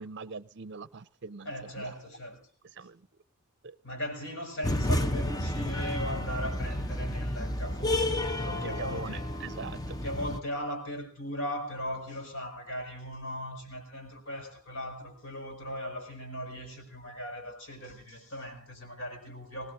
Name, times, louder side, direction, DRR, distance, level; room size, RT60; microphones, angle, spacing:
voice 1, 0.0-2.0 2.7-3.1 3.6-3.8 8.6-10.0, right 5 dB, 55° right, 0.6 m, -42 dB
voice 2, 1.4-2.4 3.8-9.3 10.0-19.7, equal, 60° left, 6.3 m, -38 dB
sound 1, 4.6-10.4, left 1 dB, 15° left, 0.8 m, -31 dB
24.5 x 19.0 x 2.7 m
head